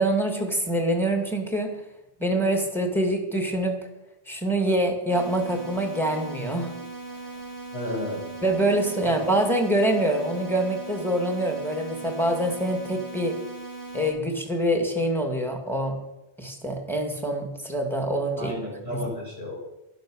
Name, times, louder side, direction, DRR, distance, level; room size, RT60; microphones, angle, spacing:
voice 1, 0.0-1.7 2.2-3.8 4.3-6.7 8.4-13.3 13.9-16.0 16.4-18.5, right 1 dB, ahead, 4 dB, 2.1 m, -25 dB
sound 1, 5.1-14.1, right 3 dB, 20° left, 2.8 m, -39 dB
voice 2, 7.7-8.3 9.0-9.1 18.4-19.6, left 1 dB, 80° left, -3 dB, 6.0 m, -32 dB
12.0 x 11.5 x 6.4 m, 0.91 s
omnidirectional pair, 1.0 m